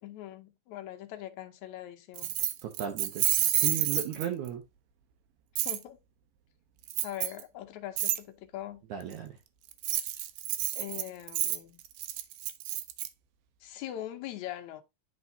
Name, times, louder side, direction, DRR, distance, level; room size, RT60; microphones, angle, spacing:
voice 1, 0.0-2.4 5.6-6.0 7.0-8.8 10.8-11.8 13.6-14.8, left 12 dB, 70° left, 2.0 m, -41 dB
Keys jangling, 2.2-4.5 5.6-5.8 6.9-7.4 8.0-8.2 9.7-13.1, right 13 dB, 85° right, 2.4 m, -29 dB
voice 2, 2.6-3.3 3.5-4.6 8.9-9.3, right 9 dB, 70° right, 2.2 m, -35 dB
10.5 x 3.7 x 2.6 m
omnidirectional pair, 3.8 m